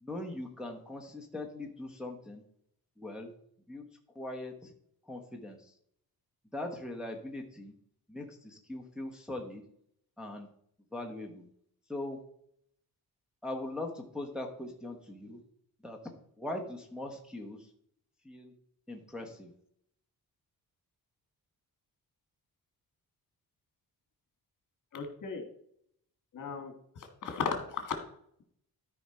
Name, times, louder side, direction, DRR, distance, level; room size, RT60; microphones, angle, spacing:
voice 1, 0.0-2.4 3.0-3.3 3.7-3.8 4.1-4.7 5.1-5.7 6.5-7.7 8.1-9.6 10.2-10.5 10.9-11.5 11.9-12.2 13.4-15.4 15.8-16.0 16.4-17.7 18.2-18.5 18.9-19.5, left 1 dB, ahead, 0 dB, 0.9 m, -40 dB
voice 2, 24.9-25.4 26.3-26.7 27.2-27.9, left 6 dB, 55° left, 5 dB, 1.7 m, -35 dB
13.0 x 5.0 x 4.2 m, 0.70 s
wide cardioid pair, 165°, 37 cm